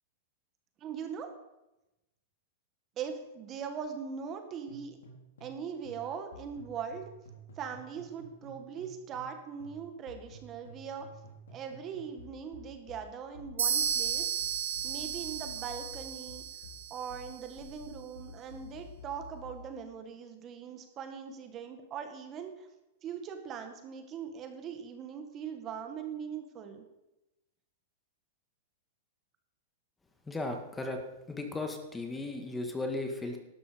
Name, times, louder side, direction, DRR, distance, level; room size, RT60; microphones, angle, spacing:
voice 1, 0.8-1.3 3.0-5.0 5.4-7.1 7.6-11.1 11.5-14.3 14.8-16.4 16.9-22.7 23.0-26.8, right 7 dB, 35° right, 6 dB, 1.7 m, -41 dB
sound 1, 4.7-5.6 5.9-9.3 9.6-19.7, left 1 dB, 85° left, 4.0 m, -50 dB
sound 2, 13.6-17.3, right 8 dB, 85° right, 1.8 m, -33 dB
voice 2, 30.3-31.0 31.3-33.4, left 2 dB, 10° left, 5 dB, 1.9 m, -36 dB
12.5 x 11.5 x 5.2 m, 0.97 s
hypercardioid pair, 120°, 0 cm